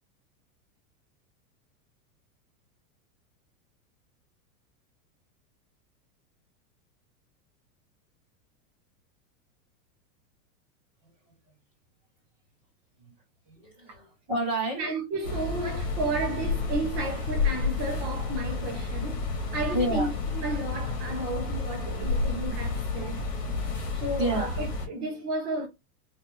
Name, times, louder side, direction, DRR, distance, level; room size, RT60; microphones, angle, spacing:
voice 1, 13.5-14.8 19.7-20.1 24.2-24.5, right 1 dB, 5° right, 0.3 m, -29 dB
voice 2, 14.8-23.2 23.9-25.7, right 2 dB, 25° right, 1.1 m, -33 dB
sound 1, 15.2-24.9, left 3 dB, 55° left, 2.8 m, -30 dB
5.1 x 2.9 x 3.1 m
supercardioid pair, 180°, 45 cm